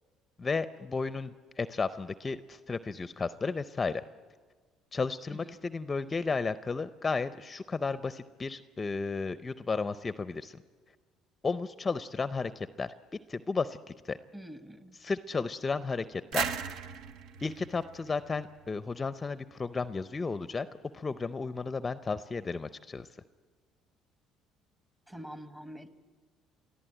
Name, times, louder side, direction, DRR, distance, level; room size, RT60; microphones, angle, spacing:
voice 1, 0.4-4.0 4.9-10.6 11.4-12.9 13.3-14.2 15.0-16.5 17.4-20.7 20.9-23.1, left 4 dB, 25° left, 13 dB, 0.5 m, -33 dB
voice 2, 14.3-15.0 25.1-25.9, equal, 15° right, 10 dB, 1.2 m, -45 dB
sound 1, 16.3-19.0, right 6 dB, 70° right, 0.9 m, -37 dB
23.0 x 14.0 x 9.0 m, 1.5 s
supercardioid pair, 90°, 0 cm